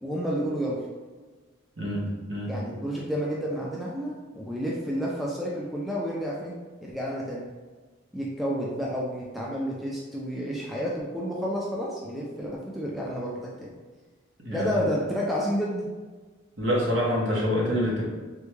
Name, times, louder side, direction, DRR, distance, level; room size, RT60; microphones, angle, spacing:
voice 1, 0.0-0.9 2.4-7.4 8.1-13.7 14.5-15.9, equal, ahead, -5 dB, 0.3 m, -30 dB
voice 2, 1.8-2.5 14.4-14.8 16.6-18.0, equal, 65° right, -3 dB, 0.9 m, -26 dB
3.5 x 2.2 x 3.0 m, 1.3 s
head